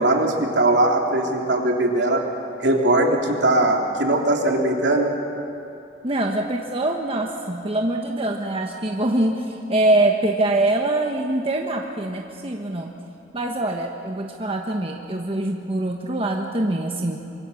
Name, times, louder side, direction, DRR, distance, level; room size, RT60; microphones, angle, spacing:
voice 1, 0.0-2.2 2.6-5.1, right 1 dB, 70° right, 1 dB, 3.0 m, -20 dB
voice 2, 6.0-13.0 13.3-17.2, right 1 dB, 30° right, 1 dB, 1.3 m, -24 dB
25.0 x 23.0 x 7.1 m, 2.7 s
head